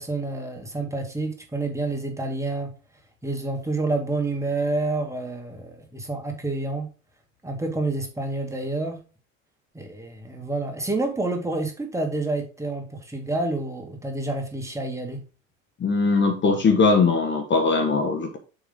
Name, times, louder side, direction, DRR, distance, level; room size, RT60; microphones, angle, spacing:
voice 1, 0.0-2.7 3.2-6.9 7.4-9.0 9.7-15.2, right 2 dB, 5° right, 2 dB, 2.2 m, -28 dB
voice 2, 15.8-18.4, left 4 dB, 30° left, 4 dB, 1.3 m, -20 dB
7.0 x 5.3 x 3.9 m, 0.34 s
figure-of-eight pair, 75°, 39 cm